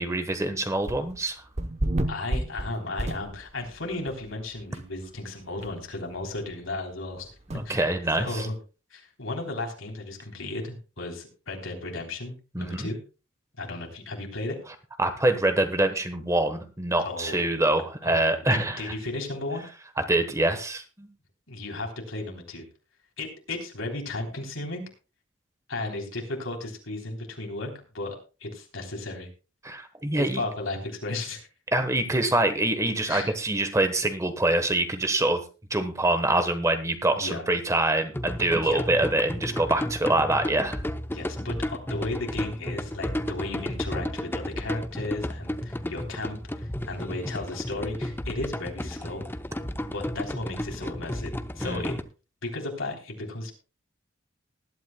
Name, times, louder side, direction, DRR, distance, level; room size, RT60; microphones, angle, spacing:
voice 1, 0.0-1.4 7.5-8.5 12.5-12.9 15.0-18.9 20.1-21.1 29.6-30.4 31.7-35.4 35.7-40.8 51.6-51.9, right 2 dB, 15° right, 8 dB, 1.2 m, -25 dB
sound 1, 0.8-1.2 1.6-3.7 4.1-4.2 4.7-4.8 5.1-5.2 5.6-5.7 7.5-7.6, right 1 dB, 35° right, 0.9 m, -30 dB
voice 2, 2.1-7.3 7.7-7.9 8.2-8.6 8.9-13.0 13.6-14.6 17.0-17.6 18.0-19.6 21.5-22.7 23.2-24.8 25.7-29.3 30.2-31.5 33.1-33.4 37.1-37.4 38.6-38.9 41.1-49.2 49.9-51.9 52.4-53.5, left 2 dB, 80° left, 2 dB, 3.5 m, -35 dB
sound 2, 38.1-52.0, left 1 dB, 10° left, 0.7 m, -33 dB
20.0 x 12.0 x 2.3 m, 0.32 s
head